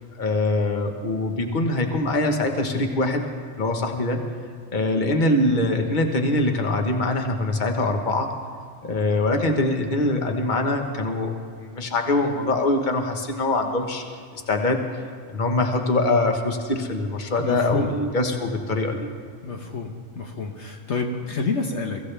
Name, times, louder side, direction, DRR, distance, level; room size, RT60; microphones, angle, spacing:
voice 1, 0.2-3.2 3.6-4.2 4.7-8.3 8.8-14.0 14.3-14.8 15.3-19.1, left 2 dB, 40° left, 4 dB, 1.4 m, -23 dB
voice 2, 17.4-17.9 19.4-22.0, left 4 dB, 65° left, 2 dB, 1.3 m, -28 dB
23.5 x 15.5 x 3.4 m, 2.1 s
omnidirectional pair, 1.3 m